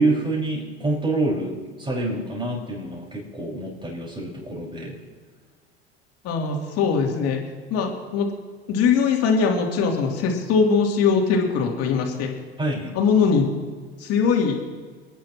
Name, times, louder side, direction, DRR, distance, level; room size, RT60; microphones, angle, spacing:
voice 1, 0.0-1.5 1.8-5.0 12.6-12.9, right 2 dB, 15° right, -3 dB, 5.3 m, -26 dB
voice 2, 6.2-7.4 7.7-8.3 8.7-12.3 12.9-13.4 14.0-14.6, left 5 dB, 50° left, 0 dB, 3.0 m, -21 dB
29.0 x 10.5 x 3.0 m, 1.5 s
hypercardioid pair, 75°, 31 cm